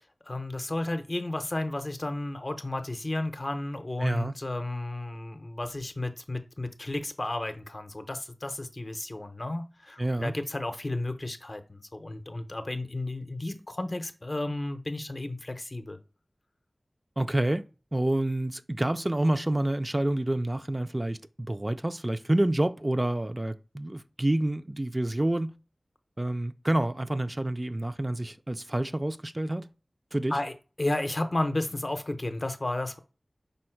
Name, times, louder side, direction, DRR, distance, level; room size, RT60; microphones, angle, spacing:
voice 1, 0.2-16.0 30.3-33.0, left 2 dB, 45° left, 0.6 m, -33 dB
voice 2, 4.0-4.3 10.0-10.3 17.2-17.7 17.9-25.5 26.2-29.7 30.1-30.4, right 1 dB, 30° right, 0.3 m, -28 dB
5.3 x 2.0 x 4.4 m
wide cardioid pair, 50°, 0 cm